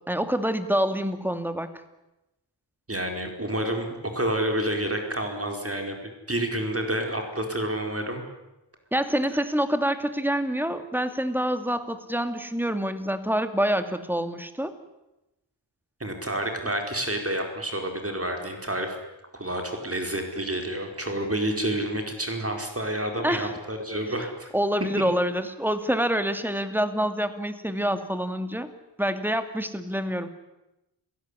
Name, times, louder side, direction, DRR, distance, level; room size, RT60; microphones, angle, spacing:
voice 1, 0.1-1.7 8.9-14.8 23.2-23.5 24.5-28.7 29.0-30.3, equal, 5° right, 9 dB, 2.3 m, -26 dB
voice 2, 2.9-8.2 16.0-19.0 19.3-24.5, right 1 dB, 30° right, 4 dB, 4.6 m, -29 dB
30.0 x 17.0 x 9.9 m, 0.95 s
wide cardioid pair, 90°, 45 cm